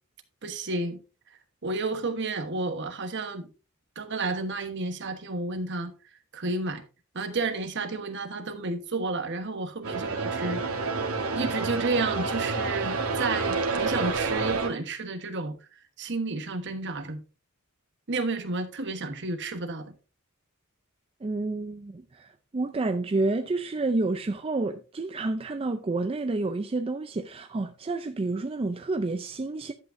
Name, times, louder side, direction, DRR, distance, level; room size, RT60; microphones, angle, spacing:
voice 1, 0.4-1.0 1.6-3.5 3.9-5.9 6.3-6.8 7.1-10.8 11.3-15.5 16.0-17.2 18.1-19.9, right 3 dB, 55° right, 1.3 m, -31 dB
sound 1, 9.8-14.7, right 4 dB, 90° right, 1.7 m, -29 dB
voice 2, 21.2-29.7, right 2 dB, 25° right, 0.4 m, -29 dB
11.0 x 8.0 x 2.6 m
head